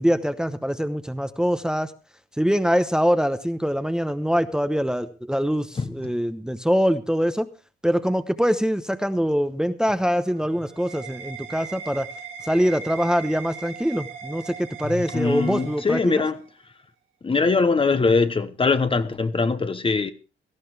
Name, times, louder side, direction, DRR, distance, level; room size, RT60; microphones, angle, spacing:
voice 1, 0.0-1.9 2.4-7.5 7.8-12.1 12.4-16.2, equal, 5° right, 0.9 m, -23 dB
voice 2, 5.7-6.1 14.8-16.4 17.2-20.1, left 4 dB, 25° left, 1.0 m, -22 dB
sound 1, 10.1-16.5, right 6 dB, 90° right, 3.0 m, -39 dB
17.5 x 13.0 x 3.4 m
cardioid pair, 90°, 20 cm